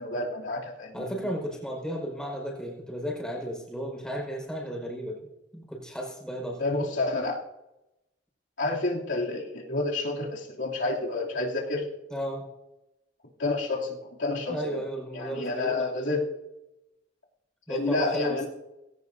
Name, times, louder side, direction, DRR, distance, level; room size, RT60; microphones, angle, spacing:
voice 1, 0.0-0.9 6.6-7.4 8.6-11.9 13.4-14.8 15.1-16.2 17.7-18.4, left 2 dB, 75° left, -3 dB, 2.9 m, -29 dB
voice 2, 0.9-5.2 5.5-6.6 12.1-12.5 14.5-16.1 17.7-18.5, equal, 5° left, -1 dB, 5.1 m, -34 dB
20.0 x 17.0 x 2.7 m, 0.94 s
head